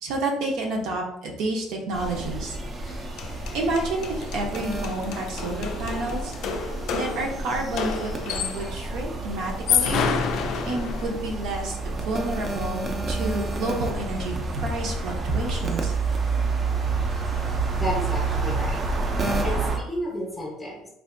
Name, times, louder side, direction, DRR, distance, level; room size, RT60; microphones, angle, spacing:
voice 1, 0.0-2.6 3.5-6.3 6.9-10.0 10.7-15.9, right 2 dB, 70° right, 1 dB, 0.7 m, -29 dB
sound 1, 1.9-19.8, right 3 dB, 30° right, 0.5 m, -29 dB
sound 2, 2.9-3.0 3.2-8.8 9.5-11.3, left 6 dB, 60° left, 0.4 m, -29 dB
voice 2, 17.7-18.9 19.4-20.9, equal, 10° left, -3 dB, 0.7 m, -32 dB
3.3 x 2.5 x 2.5 m, 0.79 s
cardioid pair, 130°, 0 cm